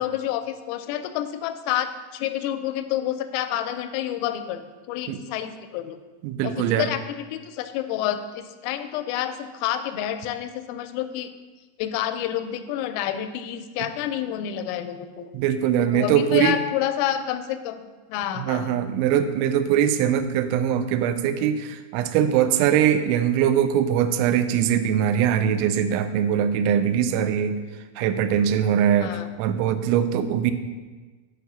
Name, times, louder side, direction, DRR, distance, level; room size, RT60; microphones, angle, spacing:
voice 1, 0.0-6.0 6.4-11.3 11.8-15.3 15.8-17.8 18.1-18.8 29.0-29.3, left 11 dB, 85° left, 10 dB, 3.1 m, -29 dB
voice 2, 6.2-6.9 15.3-16.6 18.4-27.6 28.0-30.5, right 9 dB, 85° right, 9 dB, 2.7 m, -22 dB
8.1 x 4.4 x 6.7 m, 1.3 s
omnidirectional pair, 5.9 m